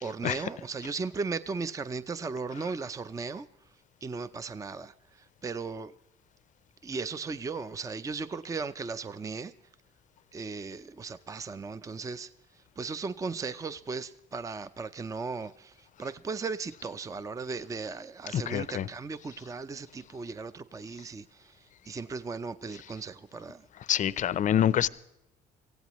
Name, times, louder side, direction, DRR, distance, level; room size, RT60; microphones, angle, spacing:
voice 1, 0.0-3.4 4.0-4.9 5.4-5.9 6.8-9.5 10.3-12.3 12.8-15.7 16.0-21.5 21.9-23.6, right 4 dB, 20° right, 0.5 m, -36 dB
voice 2, 18.3-18.9 23.9-24.9, left 10 dB, 50° left, 0.6 m, -26 dB
24.0 x 16.0 x 3.1 m
cardioid pair, 110°, 17 cm